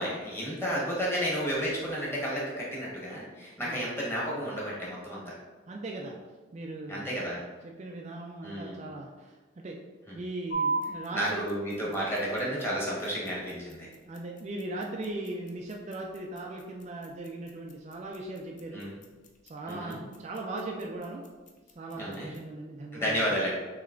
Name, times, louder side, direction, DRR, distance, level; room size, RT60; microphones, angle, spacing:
voice 1, 0.0-5.3 6.9-7.4 8.4-8.8 10.1-10.2 11.1-13.9 18.7-18.9 19.7-20.0 22.0-22.3 22.9-23.5, equal, 10° left, -6 dB, 1.2 m, -32 dB
voice 2, 5.7-6.2 6.5-7.2 7.6-9.8 10.2-11.5 11.8-11.9 14.0-18.8 19.4-21.2 21.8-23.4, right 2 dB, 35° right, 0 dB, 0.3 m, -39 dB
sound 1, 10.5-22.5, right 4 dB, 40° left, 0.5 m, -40 dB
6.4 x 2.8 x 2.5 m, 1.3 s
head